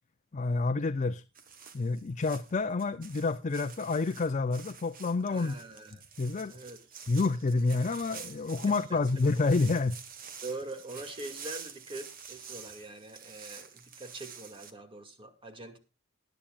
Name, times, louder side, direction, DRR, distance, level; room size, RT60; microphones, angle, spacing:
voice 1, 0.3-1.2 1.7-5.6 6.2-6.5 7.1-10.0, left 3 dB, 40° left, 0.5 m, -28 dB
sound 1, 1.3-14.7, right 6 dB, 45° right, 1.4 m, -48 dB
voice 2, 5.3-6.0 6.5-6.8 8.7-9.0 10.4-15.8, right 2 dB, 25° right, 2.3 m, -43 dB
20.0 x 10.0 x 2.4 m
head